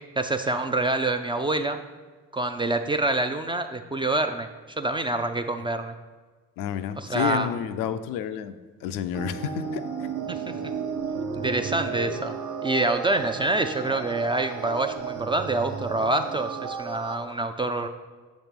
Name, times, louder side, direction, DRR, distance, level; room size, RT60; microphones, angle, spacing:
voice 1, 0.2-1.8 2.3-4.5 4.8-5.9 7.0-7.5 10.3-10.4 11.3-12.3 12.6-17.9, right 2 dB, 15° right, 6 dB, 0.4 m, -26 dB
voice 2, 6.6-10.1, left 9 dB, 65° left, 11 dB, 0.5 m, -30 dB
sound 1, 9.1-17.2, right 6 dB, 55° right, 0.8 m, -33 dB
6.4 x 3.1 x 5.2 m, 1.3 s
hypercardioid pair, 55°, 36 cm